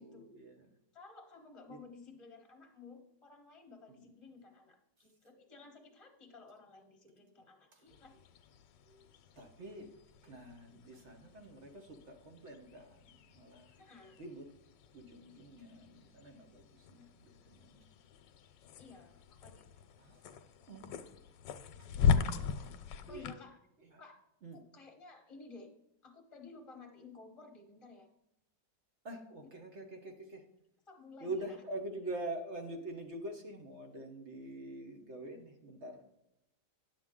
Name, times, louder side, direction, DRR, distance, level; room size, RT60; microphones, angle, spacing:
voice 1, 0.0-0.7 1.7-1.8 3.9-4.1 5.0-5.1 7.7-7.9 8.8-9.1 9.4-9.9 10.2-13.8 14.1-14.5 14.9-17.9 20.0-20.3 20.7-21.1 21.8-21.9 23.1-23.3 23.8-24.0 24.4-24.6 29.0-30.4 31.2-36.0, right 2 dB, 45° right, 4 dB, 1.2 m, -45 dB
voice 2, 0.9-8.1 10.2-10.4 13.8-14.2 18.8-19.7 23.1-23.6 24.0-24.2 24.5-25.7 26.0-28.1 30.9-31.6, left 4 dB, 20° left, 2 dB, 1.1 m, -54 dB
sound 1, 7.9-23.3, left 6 dB, 80° left, 1.3 m, -39 dB
10.5 x 7.5 x 3.7 m, 0.85 s
omnidirectional pair, 1.9 m